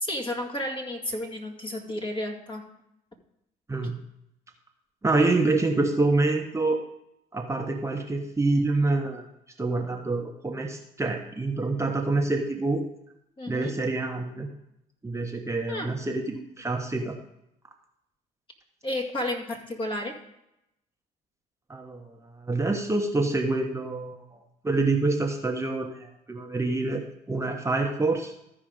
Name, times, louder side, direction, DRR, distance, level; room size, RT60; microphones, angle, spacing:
voice 1, 0.0-2.7 13.4-13.8 15.7-16.0 18.8-20.2, left 1 dB, 30° left, 3 dB, 2.3 m, -32 dB
voice 2, 5.0-6.8 7.3-9.2 9.6-12.8 13.5-14.5 15.0-17.2 21.7-24.4 24.6-28.3, right 2 dB, 15° right, 2 dB, 1.1 m, -26 dB
14.0 x 5.0 x 5.1 m, 0.82 s
hypercardioid pair, 65°, 18 cm